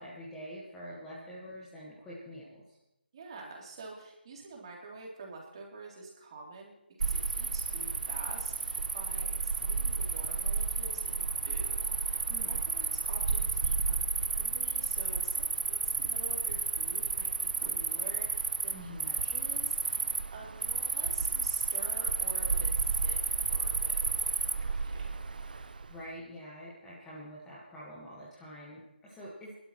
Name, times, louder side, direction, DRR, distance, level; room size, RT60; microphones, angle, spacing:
voice 1, 0.0-2.8 12.3-12.6 18.7-19.2 25.9-29.5, equal, 5° left, -7 dB, 1.5 m, -46 dB
voice 2, 3.1-6.7 7.0-23.2 23.5-23.9 24.4-25.2, right 3 dB, 30° right, -2 dB, 3.2 m, -48 dB
Cricket, 7.0-25.9, right 4 dB, 55° right, 0.9 m, -32 dB
22.0 x 12.0 x 3.1 m, 0.85 s
figure-of-eight pair, 160°, 6 cm